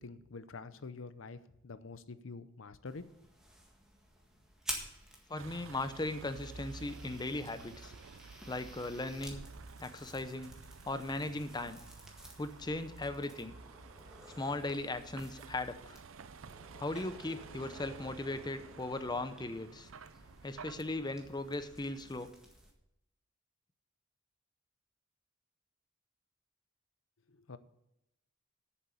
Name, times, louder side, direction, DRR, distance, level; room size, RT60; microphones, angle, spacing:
voice 1, 0.0-3.0 27.3-27.6, left 4 dB, 75° left, 13 dB, 0.7 m, -47 dB
sound 1, 2.9-22.7, equal, 5° right, 1.7 m, -52 dB
voice 2, 5.3-7.9 8.5-9.4 9.8-10.5 10.9-11.8 12.4-13.6 14.4-16.0 16.8-19.9 20.4-22.3, left 2 dB, 20° left, 11 dB, 0.7 m, -38 dB
Vehicle, 5.4-22.3, right 4 dB, 85° right, 0.6 m, -52 dB
8.7 x 7.2 x 8.3 m, 0.85 s
head